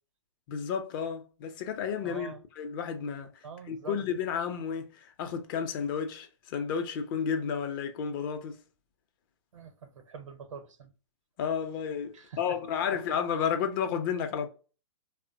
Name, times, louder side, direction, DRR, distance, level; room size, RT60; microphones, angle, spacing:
voice 1, 0.5-3.3 3.7-8.6 11.4-14.5, left 7 dB, 45° left, 0.5 m, -32 dB
voice 2, 2.0-2.4 3.4-4.0 9.5-10.9 12.1-12.6, right 5 dB, 85° right, 0.8 m, -44 dB
2.7 x 2.1 x 2.5 m
hypercardioid pair, 130°, 16 cm